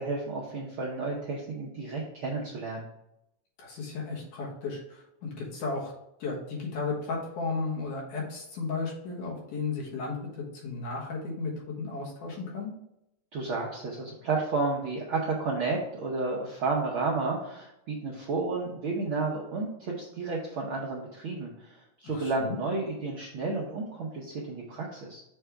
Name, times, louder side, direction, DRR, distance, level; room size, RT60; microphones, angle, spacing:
voice 1, 0.0-2.9 13.3-25.2, right 3 dB, 75° right, -2 dB, 1.2 m, -32 dB
voice 2, 3.6-5.9 6.2-12.7 22.0-22.6, left 4 dB, 85° left, -2 dB, 2.9 m, -34 dB
6.6 x 3.4 x 4.7 m, 0.83 s
omnidirectional pair, 3.5 m